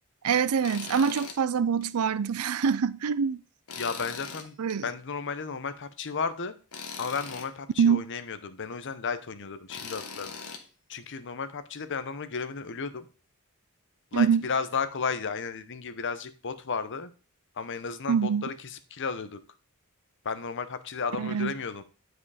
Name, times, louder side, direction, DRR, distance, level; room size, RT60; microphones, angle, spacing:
voice 1, 0.2-3.4 4.6-4.8 7.8-8.0 14.1-14.4 18.1-18.5 21.2-21.5, right 6 dB, 80° right, 0.5 m, -25 dB
Tools, 0.6-1.4 1.8-1.9 3.7-4.8 6.7-7.5 9.7-10.6, left 5 dB, 80° left, 1.4 m, -40 dB
voice 2, 3.8-4.6 4.8-6.5 7.0-10.3 10.9-13.1 14.1-17.1 17.6-19.4 20.2-21.8, left 5 dB, 55° left, 0.8 m, -33 dB
9.8 x 4.9 x 4.9 m
head